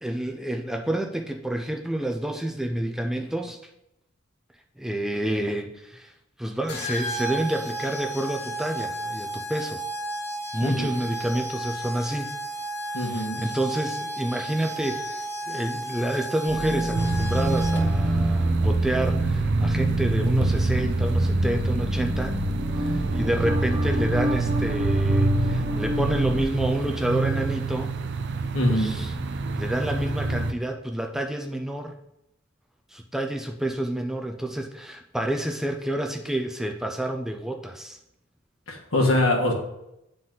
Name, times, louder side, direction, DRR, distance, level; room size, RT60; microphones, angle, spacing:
voice 1, 0.0-3.6 4.8-6.1 6.4-9.8 10.5-12.3 12.9-22.4 22.8-27.9 28.7-29.1 29.6-31.9 32.9-38.0, right 1 dB, ahead, 3 dB, 0.4 m, -29 dB
sound 1, 6.7-18.1, right 2 dB, 55° left, 2.2 m, -33 dB
voice 2, 10.6-11.0 12.9-13.4 28.5-28.9 38.7-39.5, left 1 dB, 70° left, -1 dB, 1.6 m, -23 dB
sound 2, 16.5-26.4, right 1 dB, 25° right, 0.8 m, -29 dB
sound 3, 16.9-30.5, right 2 dB, 60° right, 0.5 m, -26 dB
9.1 x 3.9 x 3.8 m, 0.86 s
head